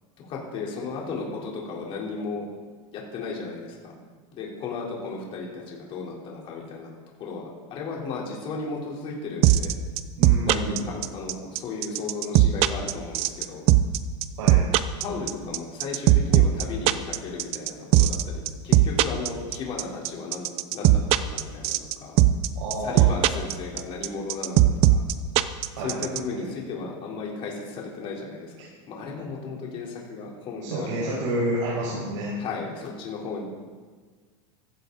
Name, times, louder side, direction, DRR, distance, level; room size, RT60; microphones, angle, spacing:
voice 1, 0.3-2.5 2.9-3.9 4.3-6.9 7.2-9.7 10.4-13.6 15.0-22.2 22.8-25.0 25.8-28.5 28.9-31.2 32.4-33.4, left 4 dB, 35° left, -2 dB, 3.9 m, -35 dB
sound 1, 9.4-26.2, right 15 dB, 40° right, 0.6 m, -18 dB
voice 2, 10.2-10.9 14.4-14.6 22.6-23.6 25.8-26.4 28.6-28.7 30.6-32.3, right 1 dB, 85° right, -6 dB, 5.3 m, -30 dB
15.5 x 14.5 x 4.1 m, 1.5 s
supercardioid pair, 155°, 16 cm